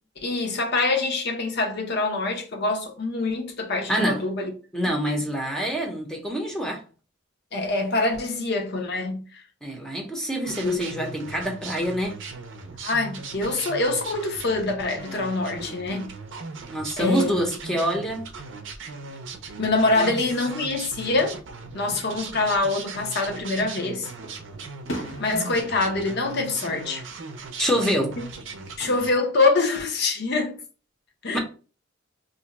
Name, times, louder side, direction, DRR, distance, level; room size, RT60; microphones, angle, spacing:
voice 1, 0.2-4.5 7.5-9.2 10.6-10.8 12.8-16.1 17.0-17.3 19.6-21.4 21.7-24.1 25.2-27.0 28.8-30.6 31.2-31.4, left 3 dB, 55° left, 0.7 m, -25 dB
voice 2, 3.9-4.2 4.7-6.8 9.6-12.2 16.7-18.2 19.9-20.2 27.6-28.2 31.3-31.4, equal, 5° left, 0.6 m, -26 dB
sound 1, 10.4-29.1, right 4 dB, 65° right, 0.5 m, -39 dB
Fireworks, 24.2-27.3 27.7-28.2 29.8-30.6, right 1 dB, 85° left, 0.9 m, -40 dB
2.5 x 2.2 x 3.9 m
head